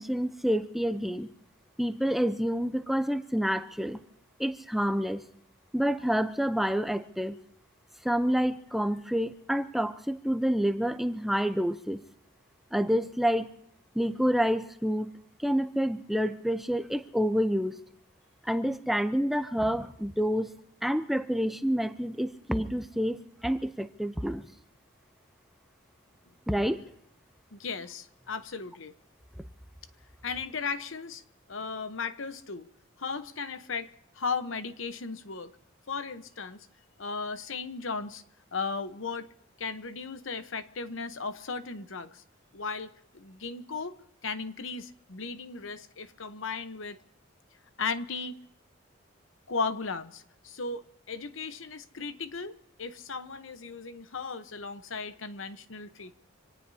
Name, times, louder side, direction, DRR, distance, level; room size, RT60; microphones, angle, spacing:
voice 1, 0.0-1.3 1.8-4.0 4.4-5.2 5.7-7.4 8.0-12.0 12.7-13.5 13.9-15.1 15.4-17.8 18.4-20.5 20.8-24.4 26.5-26.8, equal, ahead, 9 dB, 0.6 m, -28 dB
voice 2, 27.5-28.9 30.2-31.2 31.5-32.7 33.0-35.5 35.9-36.7 37.0-38.2 38.5-39.3 39.6-42.2 42.5-44.0 44.2-47.0 47.8-48.4 49.5-56.1, left 4 dB, 80° left, 11 dB, 1.0 m, -36 dB
26.0 x 18.0 x 2.8 m, 0.74 s
head